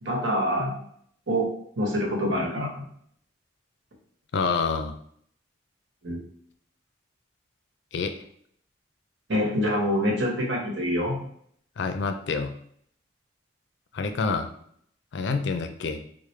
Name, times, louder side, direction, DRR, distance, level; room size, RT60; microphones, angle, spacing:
voice 1, 0.0-0.7 1.3-1.5 1.8-2.7 6.0-6.2 9.3-11.2, equal, 70° right, -2 dB, 1.2 m, -25 dB
voice 2, 4.3-4.9 7.9-8.2 11.8-12.5 13.9-14.5 15.1-16.0, left 4 dB, 65° left, 7 dB, 0.4 m, -27 dB
4.7 x 2.1 x 3.2 m, 0.64 s
head